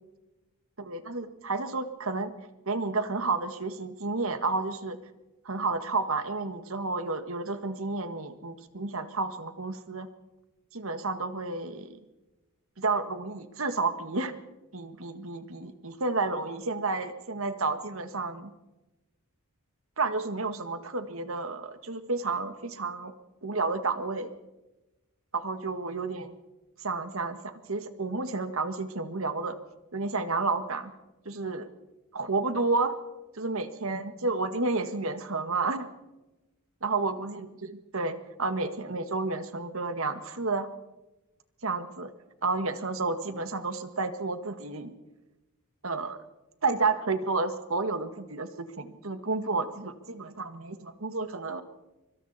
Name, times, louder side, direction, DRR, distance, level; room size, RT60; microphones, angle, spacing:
voice 1, 0.8-2.3 2.6-5.0 5.4-10.1 10.7-12.0 12.8-14.3 14.7-18.5 20.0-23.1 23.4-24.3 25.3-26.3 26.8-29.6 29.9-30.9 31.2-31.7 32.1-32.9 33.3-35.9 36.8-40.7 41.6-42.1 42.4-44.9 45.8-46.2 46.6-51.6, right 3 dB, 65° right, 9 dB, 1.8 m, -31 dB
25.0 x 24.5 x 4.3 m, 1.0 s
head